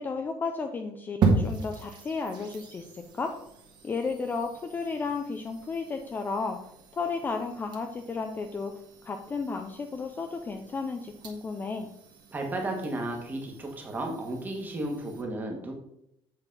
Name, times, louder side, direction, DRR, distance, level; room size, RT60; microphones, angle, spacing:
voice 1, 0.0-3.3 3.8-6.6 6.9-8.7 9.0-11.9, left 4 dB, 15° left, 5 dB, 0.4 m, -33 dB
sound 1, 1.2-15.2, right 3 dB, 40° right, 1.5 m, -36 dB
voice 2, 12.3-15.7, right 1 dB, 15° right, 1 dB, 1.4 m, -33 dB
8.1 x 4.1 x 5.3 m, 0.77 s
cardioid pair, 180°, 11 cm